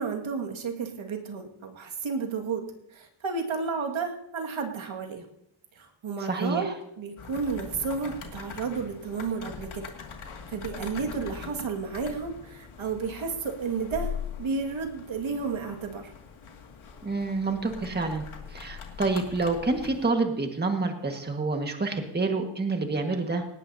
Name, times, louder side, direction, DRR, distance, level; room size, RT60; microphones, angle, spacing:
voice 1, 0.0-5.3 5.8-9.9 10.5-14.1 14.4-16.1, right 5 dB, 70° right, 2 dB, 2.2 m, -32 dB
voice 2, 6.2-6.7 17.0-23.5, right 3 dB, 20° right, 3 dB, 1.7 m, -28 dB
sound 1, 7.2-20.1, left 6 dB, 75° left, 2.5 m, -42 dB
18.5 x 18.0 x 2.8 m, 0.81 s
wide cardioid pair, 145°, 48 cm